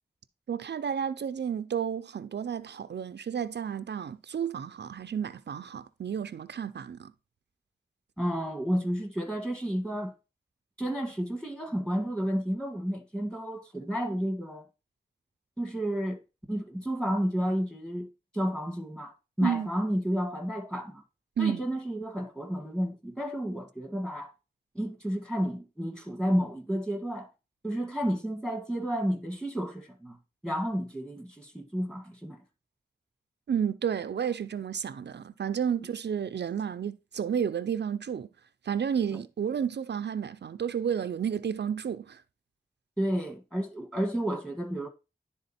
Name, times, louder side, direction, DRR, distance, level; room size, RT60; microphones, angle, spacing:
voice 1, 0.5-7.1 19.4-19.7 21.4-21.6 33.5-38.3 38.6-42.2, right 8 dB, 80° right, 0.4 m, -31 dB
voice 2, 8.2-10.1 10.8-14.6 15.6-16.2 16.5-18.1 18.3-21.0 21.4-24.3 24.7-27.3 27.6-30.2 30.4-32.4 43.0-44.9, equal, 5° left, 1.5 m, -31 dB
10.5 x 3.7 x 4.2 m
wide cardioid pair, 90°, 17 cm